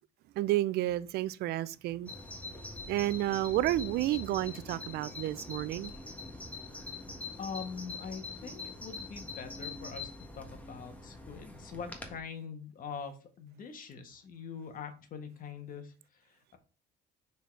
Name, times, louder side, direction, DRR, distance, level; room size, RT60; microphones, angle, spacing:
voice 1, 0.4-2.1 2.9-5.9, right 15 dB, 75° right, 0.5 m, -31 dB
Bird vocalization bird call bird song, 2.1-12.2, left 3 dB, 10° left, 1.4 m, -44 dB
voice 2, 7.4-10.1 10.4-15.9, left 6 dB, 55° left, 1.5 m, -43 dB
6.3 x 4.1 x 4.6 m
cardioid pair, 110°, 17 cm